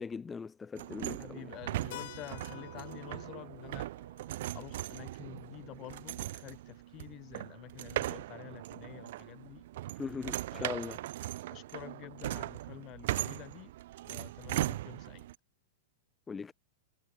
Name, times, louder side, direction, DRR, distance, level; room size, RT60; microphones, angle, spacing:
voice 1, 0.0-1.4 10.0-11.0 16.3-16.5, left 5 dB, 10° left, 0.6 m, -40 dB
sound 1, 0.8-15.4, right 15 dB, 50° right, 1.1 m, -39 dB
voice 2, 1.2-3.9 4.5-9.6 10.5-11.0 11.5-13.7 14.0-15.3, left 17 dB, 25° left, 5.4 m, -49 dB
Keyboard (musical), 1.9-6.4, left 17 dB, 50° left, 4.1 m, -52 dB
supercardioid pair, 170°, 0 cm